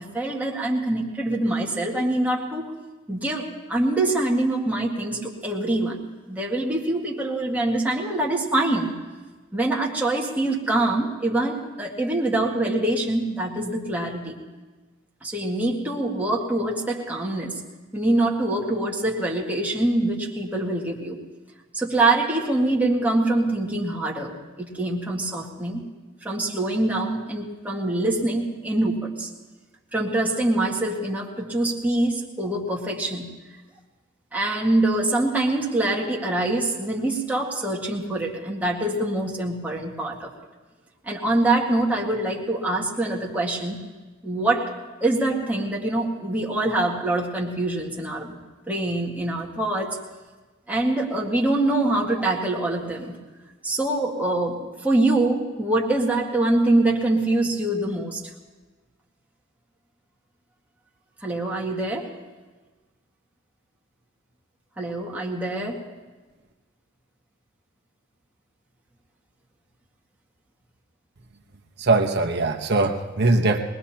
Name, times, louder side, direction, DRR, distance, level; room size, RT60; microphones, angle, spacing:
voice 1, 0.0-2.7 3.1-6.0 6.3-8.9 9.5-14.4 15.2-17.6 17.9-21.2 21.7-25.9 26.2-29.3 29.9-33.3 34.3-40.3 41.0-43.8 44.2-50.0 50.7-53.2 53.6-58.2 61.2-62.1 64.8-65.9, right 2 dB, 10° right, -2 dB, 1.8 m, -24 dB
voice 2, 71.8-73.6, right 3 dB, 55° right, 3 dB, 1.1 m, -21 dB
22.5 x 20.0 x 2.9 m, 1.3 s
head